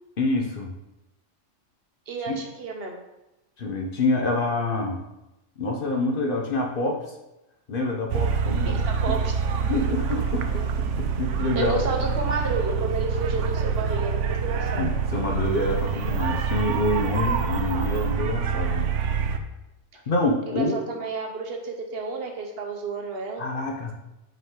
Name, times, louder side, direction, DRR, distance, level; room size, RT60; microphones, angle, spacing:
voice 1, 0.2-0.7 2.3-2.4 3.6-5.0 5.6-7.1 7.7-9.2 9.7-11.7 14.8-18.9 20.1-20.8 23.4-23.9, left 2 dB, 50° left, 1 dB, 0.9 m, -26 dB
voice 2, 2.1-3.0 8.6-9.3 11.5-14.9 20.5-23.4, right 3 dB, 60° right, 2 dB, 1.0 m, -31 dB
sound 1, 8.1-19.4, right 6 dB, 80° right, 0.9 m, -26 dB
5.5 x 5.0 x 3.7 m, 0.94 s
omnidirectional pair, 1.2 m